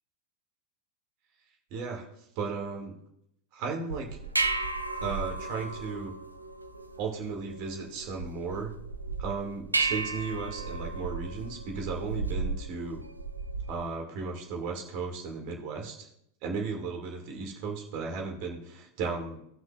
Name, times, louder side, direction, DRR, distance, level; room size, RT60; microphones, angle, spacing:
voice 1, 1.7-2.1 2.4-2.9 3.5-4.1 5.0-6.1 7.0-8.7 9.2-13.0 13.7-16.1 16.4-19.4, right 4 dB, 45° right, 1 dB, 2.3 m, -35 dB
sound 1, 3.9-13.9, right 3 dB, 80° right, 0.6 m, -34 dB
18.0 x 6.1 x 2.5 m, 0.75 s
figure-of-eight pair, 90°, 0 cm